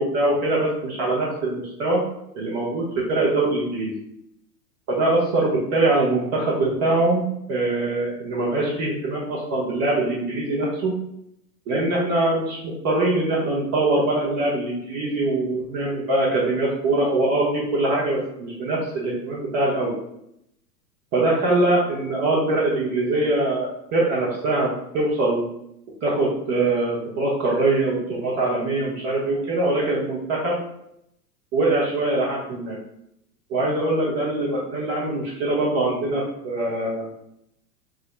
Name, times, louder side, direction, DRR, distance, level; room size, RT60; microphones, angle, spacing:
voice 1, 0.0-2.0 2.3-3.9 4.9-10.9 11.7-20.0 21.1-25.4 26.0-30.6 31.5-32.8 33.5-37.1, right 2 dB, 35° right, -4 dB, 0.8 m, -23 dB
3.6 x 2.0 x 3.3 m, 0.77 s
hypercardioid pair, 105°, 50 cm